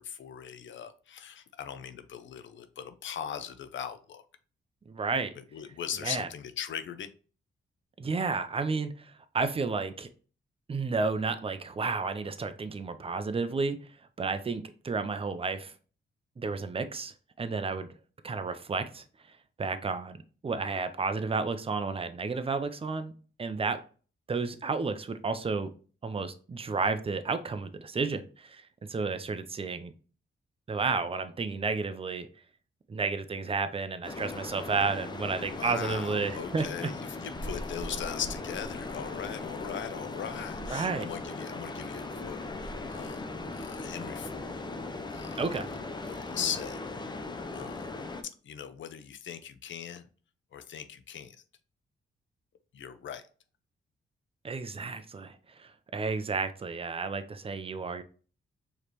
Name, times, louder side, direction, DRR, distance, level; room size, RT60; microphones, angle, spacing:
voice 1, 0.0-4.2 5.4-7.1 35.5-43.3 43.5-44.5 45.1-45.6 46.0-46.8 47.5-48.0 48.4-50.1 50.5-51.4 52.7-53.2, left 8 dB, 65° left, 11 dB, 0.6 m, -39 dB
voice 2, 4.9-5.3 6.0-6.3 8.0-10.1 10.7-13.8 14.2-15.7 16.4-17.9 18.2-23.1 23.4-23.8 24.3-25.7 26.0-29.9 30.7-32.3 32.9-36.9 40.7-41.1 45.4-45.7 54.4-58.0, right 4 dB, 25° right, 10 dB, 0.6 m, -32 dB
sound 1, 34.0-48.2, left 2 dB, 20° left, 0.5 m, -38 dB
4.8 x 3.2 x 2.9 m, 0.39 s
cardioid pair, 90°, 21 cm